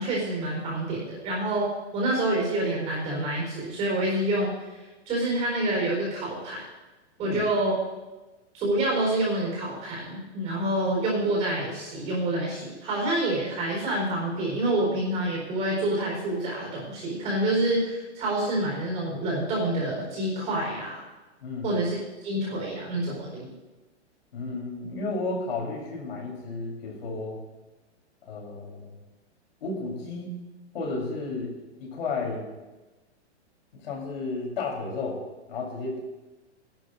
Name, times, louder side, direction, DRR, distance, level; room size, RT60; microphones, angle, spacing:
voice 1, 0.0-6.6 7.2-7.7 8.5-21.1 21.6-23.5, right 1 dB, 20° right, -3 dB, 4.4 m, -27 dB
voice 2, 24.3-27.4 28.3-28.9 29.6-30.3 30.7-31.5 31.8-32.5 33.7-35.2 35.5-36.0, left 3 dB, 55° left, -1 dB, 4.1 m, -32 dB
18.0 x 12.0 x 2.6 m, 1.1 s
hypercardioid pair, 175°, 35 cm